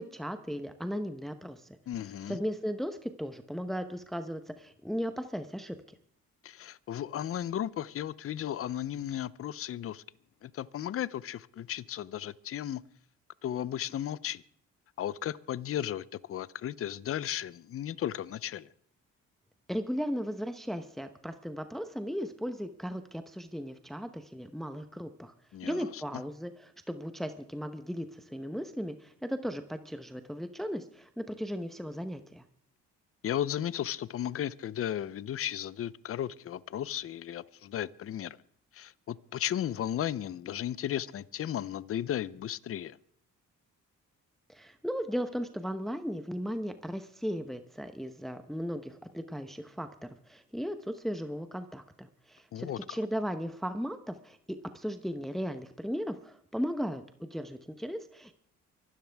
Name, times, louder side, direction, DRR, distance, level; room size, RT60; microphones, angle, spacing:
voice 1, 0.0-1.8 2.3-5.8 19.7-25.3 25.6-32.4 44.5-58.3, equal, ahead, 8 dB, 0.9 m, -36 dB
voice 2, 1.9-2.4 6.4-10.0 10.4-12.8 13.4-14.4 15.0-18.7 25.5-26.0 33.2-38.4 38.7-43.0 52.5-53.0, left 11 dB, 50° left, 19 dB, 0.6 m, -35 dB
24.5 x 12.5 x 3.5 m, 0.63 s
cardioid pair, 90°, 30 cm